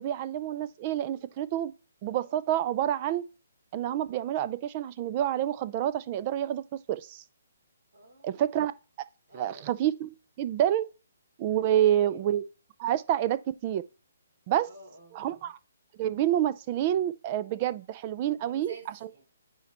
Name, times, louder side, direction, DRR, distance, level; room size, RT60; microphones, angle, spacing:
voice 1, 0.0-1.7 2.0-3.2 3.7-6.6 6.9-7.2 8.2-8.7 9.3-10.8 11.4-12.5 12.8-13.8 14.5-14.7 15.1-15.6 16.0-18.7, right 11 dB, 35° right, 0.4 m, -28 dB
voice 2, 7.9-8.6 9.3-9.8 11.7-12.2 14.6-15.5 18.4-19.2, right 1 dB, 60° right, 3.2 m, -51 dB
9.2 x 4.2 x 3.0 m
hypercardioid pair, 145°, 0 cm